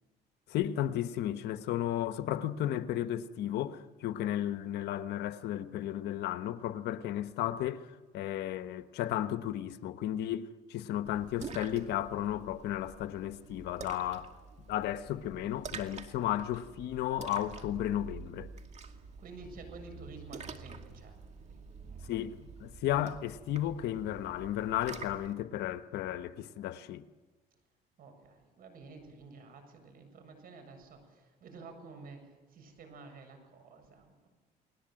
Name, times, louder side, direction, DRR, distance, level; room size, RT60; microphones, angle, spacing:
voice 1, 0.5-14.3 14.7-18.5 22.1-27.1, left 12 dB, 75° left, 1.2 m, -34 dB
Splash splatter, 11.0-25.3, right 5 dB, 40° right, 2.3 m, -48 dB
voice 2, 19.2-21.2 21.5-21.6 21.8-22.1 28.0-34.3, right 3 dB, 60° right, 7.3 m, -51 dB
30.0 x 20.0 x 7.8 m
cardioid pair, 110°, 17 cm